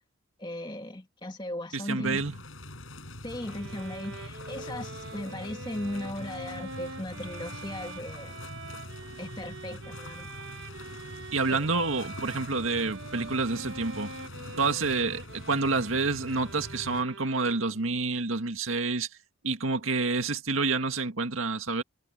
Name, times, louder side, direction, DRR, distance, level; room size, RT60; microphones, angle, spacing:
voice 1, 0.4-2.2 3.2-8.4 9.2-10.3 11.5-11.7, left 1 dB, 20° left, 2.0 m, -37 dB
voice 2, 1.7-2.4 11.3-14.1 14.6-19.1 19.4-21.8, right 3 dB, 80° right, 2.0 m, -28 dB
sound 1, 2.0-17.0, left 1 dB, 70° left, 6.7 m, -44 dB
Bowed string instrument, 3.4-17.9, right 3 dB, 60° right, 1.6 m, -44 dB
head